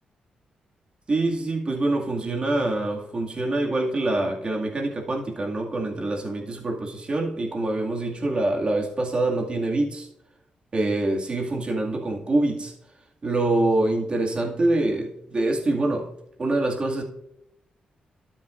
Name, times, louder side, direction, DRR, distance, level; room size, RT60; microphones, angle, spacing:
voice 1, 1.1-10.1 10.7-12.7 13.2-16.1 16.4-17.0, right 2 dB, 40° right, -1 dB, 2.2 m, -25 dB
12.5 x 7.3 x 2.6 m, 0.83 s
cardioid pair, 90°, 3 cm